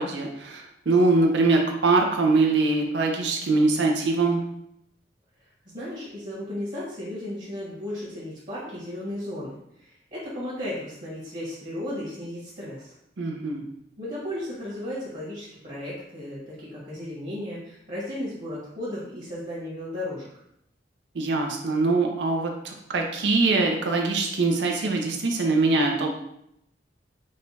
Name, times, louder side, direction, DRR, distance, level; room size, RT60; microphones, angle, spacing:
voice 1, 0.0-4.4 13.2-13.6 21.1-26.1, right 3 dB, 80° right, 1 dB, 0.6 m, -23 dB
voice 2, 5.4-13.0 14.0-20.3, left 1 dB, 45° right, -8 dB, 1.5 m, -35 dB
4.8 x 2.3 x 4.0 m, 0.76 s
head